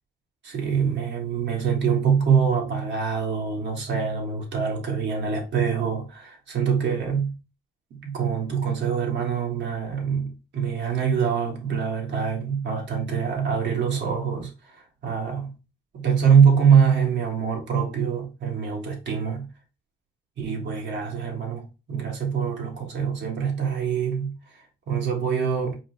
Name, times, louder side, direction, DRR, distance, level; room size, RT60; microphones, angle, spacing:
voice 1, 0.4-7.4 7.9-15.5 15.9-19.5 20.4-25.8, right 7 dB, 65° right, 1.6 m, -24 dB
4.9 x 2.0 x 4.5 m
cardioid pair, 90°, 20 cm